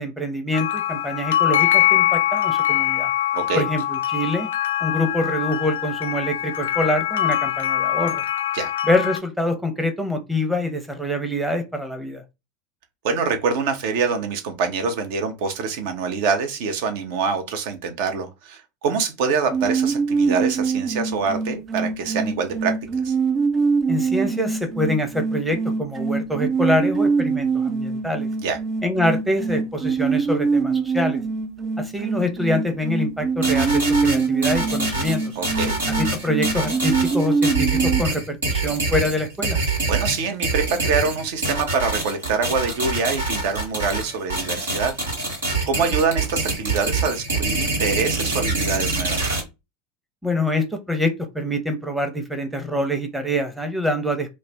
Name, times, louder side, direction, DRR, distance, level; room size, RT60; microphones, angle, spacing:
voice 1, 0.0-3.1 3.5-4.5 4.8-8.2 8.9-12.2 23.9-28.3 28.8-31.2 31.8-35.2 35.9-39.6 50.2-54.3, left 1 dB, 5° right, 0.7 m, -25 dB
sound 1, 0.5-9.2, left 13 dB, 70° left, 0.3 m, -23 dB
voice 2, 3.3-3.7 8.5-8.7 13.0-22.8 23.0-23.1 28.4-28.6 35.4-35.8 39.7-44.9 45.4-49.2, right 5 dB, 60° right, 0.6 m, -25 dB
sound 2, 19.5-38.0, right 5 dB, 30° right, 0.3 m, -24 dB
sound 3, 33.4-49.4, right 3 dB, 80° right, 1.1 m, -25 dB
2.4 x 2.0 x 3.4 m
figure-of-eight pair, 85°, 0 cm